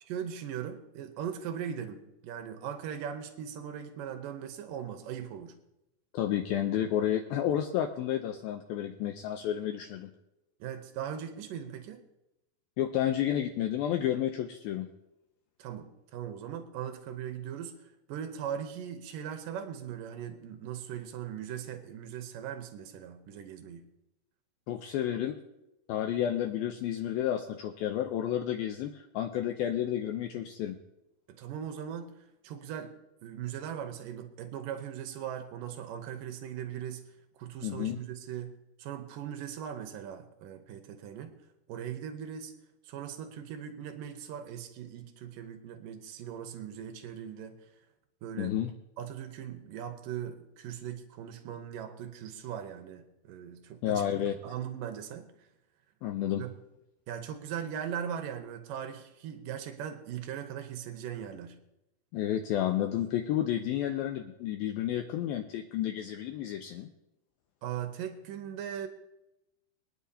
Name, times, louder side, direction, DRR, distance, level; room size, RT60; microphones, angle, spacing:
voice 1, 0.1-5.6 10.6-12.0 15.6-23.9 31.3-32.9 33.2-37.0 37.4-41.3 41.7-42.5 42.8-47.6 48.2-48.6 49.0-55.5 56.4-56.5 57.1-61.6 67.6-68.9, right 9 dB, 80° right, 7 dB, 2.0 m, -39 dB
voice 2, 6.1-10.1 12.8-14.9 24.7-25.4 25.9-30.8 37.6-38.0 48.4-48.7 53.8-54.3 56.0-56.4 62.1-66.9, left 11 dB, 90° left, 5 dB, 2.1 m, -31 dB
24.0 x 10.0 x 2.8 m, 0.90 s
omnidirectional pair, 5.1 m